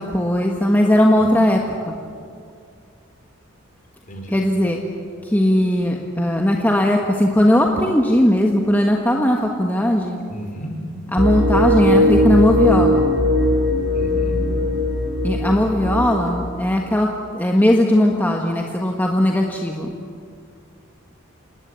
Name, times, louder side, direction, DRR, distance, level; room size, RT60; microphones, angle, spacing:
voice 1, 0.0-1.6 1.9-2.0 4.3-4.8 5.2-10.2 11.1-13.1 15.2-17.1 17.3-19.9, left 1 dB, 10° left, 0 dB, 1.4 m, -18 dB
voice 2, 10.3-10.7 13.9-14.4, equal, 40° left, 3 dB, 4.6 m, -33 dB
sound 1, 11.2-16.5, left 1 dB, 65° right, 4.5 m, -19 dB
28.0 x 19.0 x 8.3 m, 2.3 s
head